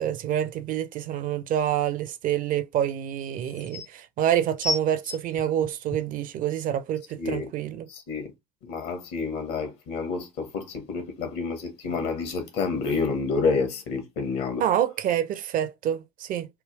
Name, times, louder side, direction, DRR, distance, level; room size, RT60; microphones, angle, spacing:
voice 1, 0.0-7.9 14.6-16.5, right 10 dB, 45° right, 0.5 m, -27 dB
sound 1, 1.3-1.4 3.0-3.1 3.4-3.9 4.6-6.2 6.9-7.0, left 2 dB, 40° left, 0.7 m, -32 dB
voice 2, 7.2-7.5 7.9-8.3 8.6-14.6, left 4 dB, 60° left, 1.3 m, -29 dB
3.4 x 2.2 x 3.2 m
hypercardioid pair, 65°, 19 cm